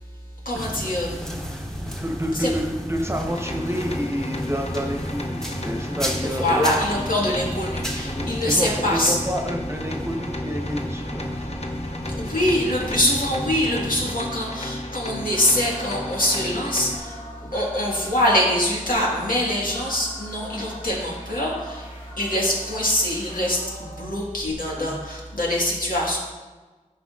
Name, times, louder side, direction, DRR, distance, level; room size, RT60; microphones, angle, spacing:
voice 1, 0.4-1.2 2.4-2.5 6.4-9.2 12.1-17.2 17.5-21.9 22.2-26.2, left 1 dB, 90° left, -4 dB, 1.7 m, -24 dB
sound 1, 0.5-14.1, equal, 5° left, 1.0 m, -33 dB
voice 2, 1.9-6.7 8.0-11.6 24.8-25.0, equal, 20° right, 2 dB, 0.9 m, -29 dB
sound 2, 3.3-17.0, left 1 dB, 50° left, 0.8 m, -34 dB
sound 3, 15.2-24.0, left 1 dB, 70° left, 1.7 m, -42 dB
12.5 x 5.0 x 2.4 m, 1.3 s
wide cardioid pair, 55°, 14 cm